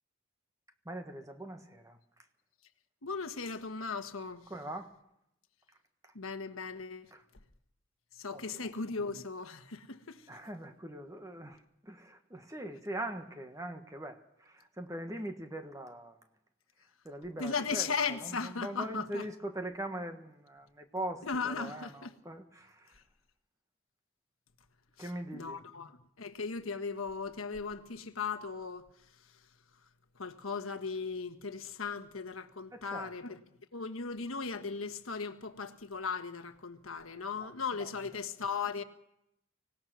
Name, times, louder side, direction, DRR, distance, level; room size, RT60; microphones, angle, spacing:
voice 1, 0.8-2.0 4.5-4.9 7.1-7.2 8.3-8.7 10.3-16.2 17.0-17.9 18.2-22.9 25.0-25.6 32.7-33.1 37.4-37.5 37.8-37.9, right 1 dB, 15° right, 1.3 m, -41 dB
voice 2, 3.0-4.5 6.1-7.1 8.1-10.3 17.4-19.2 21.2-22.1 22.9-23.0 25.0-29.4 30.1-33.4 33.7-38.8, left 5 dB, 85° left, 1.3 m, -37 dB
25.0 x 17.0 x 6.2 m
head